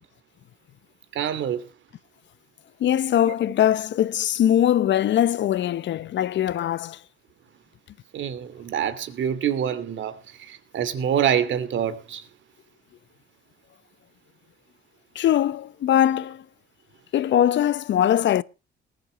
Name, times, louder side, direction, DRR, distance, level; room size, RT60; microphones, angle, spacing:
voice 1, 1.1-1.7 3.2-3.3 8.1-12.2, right 9 dB, 70° right, 2.7 m, -26 dB
voice 2, 2.8-7.0 15.1-16.4 17.1-18.4, left 11 dB, 65° left, 0.8 m, -21 dB
19.5 x 8.7 x 5.3 m
cardioid pair, 90°, 20 cm